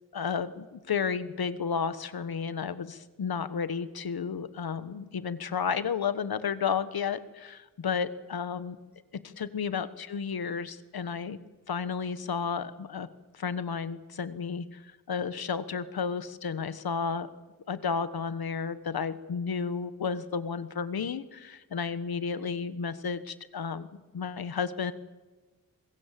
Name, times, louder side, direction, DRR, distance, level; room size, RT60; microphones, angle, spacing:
voice 1, 0.1-8.8 9.4-11.4 11.7-13.1 13.3-17.3 17.7-23.9 24.1-24.9, left 6 dB, 85° left, 13 dB, 1.3 m, -32 dB
23.5 x 21.5 x 7.6 m, 1.2 s
wide cardioid pair, 100°, 36 cm